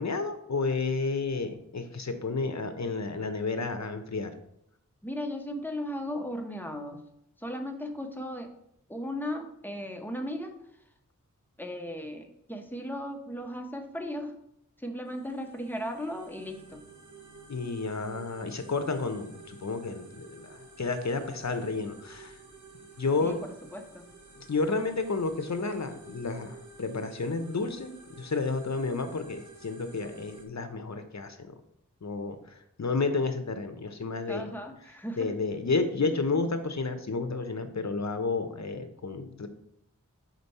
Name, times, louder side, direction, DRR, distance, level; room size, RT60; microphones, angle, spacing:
voice 1, 0.0-4.3 17.5-22.3 23.0-23.4 24.4-27.9 28.2-31.5 32.0-34.4 35.2-39.5, left 3 dB, 55° left, 8 dB, 0.7 m, -31 dB
voice 2, 5.0-7.0 7.4-8.6 8.9-10.5 11.6-14.4 14.8-16.8 23.2-24.1 34.3-35.3, equal, 5° left, 4 dB, 0.9 m, -36 dB
sound 1, 15.1-30.5, right 3 dB, 65° right, 1.0 m, -51 dB
5.1 x 4.4 x 4.1 m, 0.75 s
wide cardioid pair, 40°, 32 cm